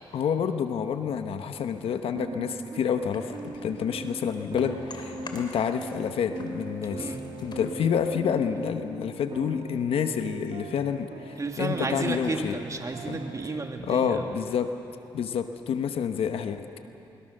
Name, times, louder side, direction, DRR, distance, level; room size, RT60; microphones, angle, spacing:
voice 1, 0.1-7.1 7.4-12.6 13.1-13.2 13.8-14.7 15.1-16.6, left 7 dB, 75° left, 8 dB, 1.0 m, -28 dB
sound 1, 2.1-13.6, right 3 dB, 55° right, 1.6 m, -39 dB
sound 2, 3.1-6.1 6.3-8.7, left 3 dB, 55° left, 3.1 m, -46 dB
voice 2, 11.4-14.3, right 3 dB, 35° right, 3 dB, 2.3 m, -32 dB
22.0 x 21.5 x 6.7 m, 2.9 s
cardioid pair, 65°, 10 cm